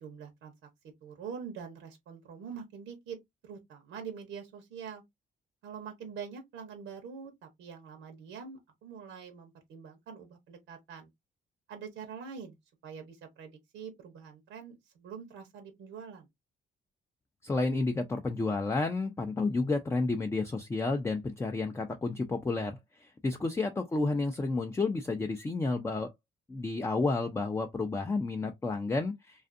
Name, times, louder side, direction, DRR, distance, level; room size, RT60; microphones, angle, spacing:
voice 1, 0.0-0.5 1.0-3.2 3.4-5.0 5.6-11.1 11.7-12.6 12.8-16.3 24.0-24.1, right 6 dB, 85° right, 0.8 m, -44 dB
voice 2, 17.4-26.1 26.5-29.5, left 3 dB, 15° left, 0.3 m, -31 dB
2.5 x 2.4 x 2.4 m
cardioid pair, 90°, 20 cm